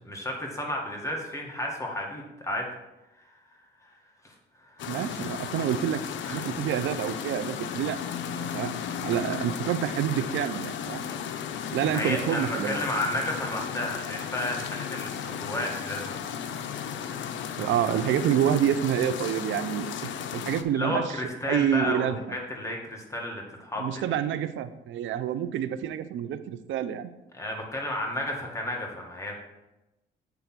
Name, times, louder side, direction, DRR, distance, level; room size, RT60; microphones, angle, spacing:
voice 1, 0.1-2.7 3.2-3.3 3.8-3.9 4.2-4.3 4.7-5.0 6.2-6.5 11.9-16.2 20.7-23.8 24.1-24.2 27.3-29.4, left 1 dB, 15° left, 0 dB, 1.7 m, -32 dB
sound 1, 4.8-20.6, left 8 dB, 70° left, 0.6 m, -35 dB
voice 2, 4.9-6.0 6.3-8.0 8.3-8.7 9.0-11.0 11.7-12.8 17.6-21.1 21.4-22.2 23.8-27.1, right 10 dB, 75° right, 11 dB, 0.5 m, -28 dB
8.0 x 3.4 x 6.0 m, 1.0 s
cardioid pair, 90°, 20 cm